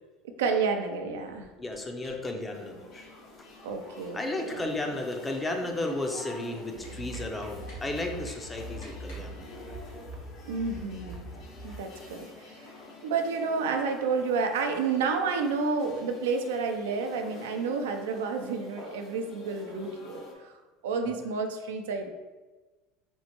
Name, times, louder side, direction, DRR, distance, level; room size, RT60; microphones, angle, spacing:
voice 1, 0.4-1.5 3.6-4.2 4.5-4.7 10.4-11.3 11.6-12.7 13.0-20.5 20.8-22.1, right 4 dB, 90° right, 5 dB, 0.4 m, -30 dB
sound 1, 1.2-9.3, left 1 dB, 90° left, 1.2 m, -54 dB
voice 2, 1.6-3.1 4.1-9.5, left 2 dB, 20° left, 3 dB, 0.5 m, -34 dB
sound 2, 2.5-20.3, left 1 dB, 55° left, 0.7 m, -48 dB
sound 3, 6.8-11.8, right 1 dB, 45° right, 0.7 m, -43 dB
4.3 x 2.1 x 2.9 m, 1.2 s
supercardioid pair, 100°, 0 cm